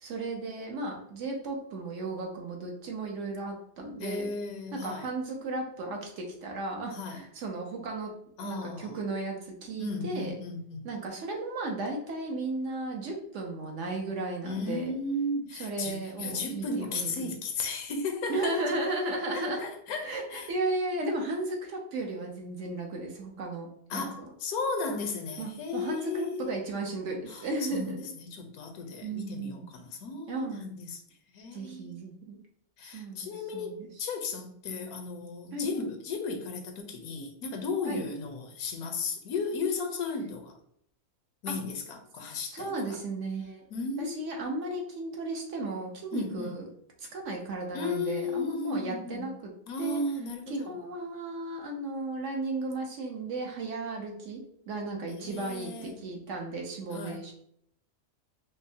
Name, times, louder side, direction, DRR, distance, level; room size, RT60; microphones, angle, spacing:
voice 1, 0.0-4.3 4.7-8.1 8.4-10.3 10.8-14.9 15.6-17.3 18.3-19.6 20.0-24.3 25.4-28.0 29.0-29.7 30.3-30.6 31.5-32.4 32.8-33.9 35.5-35.7 37.8-38.1 41.5-41.6 42.5-43.6 44.0-46.7 47.0-49.5 49.8-50.0 50.5-54.4 54.7-57.3, right 2 dB, 65° right, 1 dB, 1.0 m, -35 dB
voice 2, 4.0-5.1 6.9-7.2 8.4-9.0 9.8-10.9 14.4-18.8 19.3-20.5 23.9-26.5 27.3-31.0 31.3-32.0 32.8-40.6 41.4-42.7 43.7-44.5 46.1-46.6 47.7-49.3 49.7-50.8 55.1-56.0 56.9-57.2, left 3 dB, 80° left, 4 dB, 1.1 m, -35 dB
5.3 x 2.1 x 2.6 m, 0.68 s
omnidirectional pair, 1.5 m